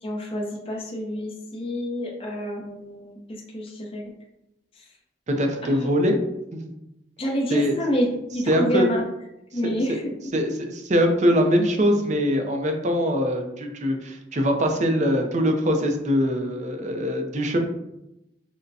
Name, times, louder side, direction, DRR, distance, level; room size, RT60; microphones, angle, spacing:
voice 1, 0.0-4.0 4.8-4.9 5.6-5.9 7.2-8.1 8.3-9.0 9.5-10.4, equal, 30° left, -2 dB, 0.6 m, -28 dB
voice 2, 5.3-6.2 6.5-6.6 7.5-7.8 8.5-8.9 9.6-9.7 10.3-17.6, equal, 40° right, 4 dB, 0.5 m, -22 dB
6.4 x 2.1 x 2.7 m, 0.88 s
head